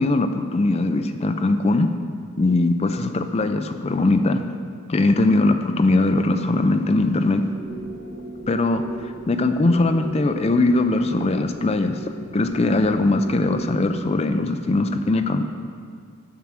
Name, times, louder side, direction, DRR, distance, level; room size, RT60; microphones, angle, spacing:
voice 1, 0.0-1.9 2.4-4.4 4.9-7.4 8.5-12.0 12.3-15.4, left 2 dB, 30° left, 8 dB, 0.4 m, -20 dB
sound 1, 7.4-14.1, right 2 dB, 60° right, 2.1 m, -39 dB
7.4 x 5.9 x 7.4 m, 2.1 s
head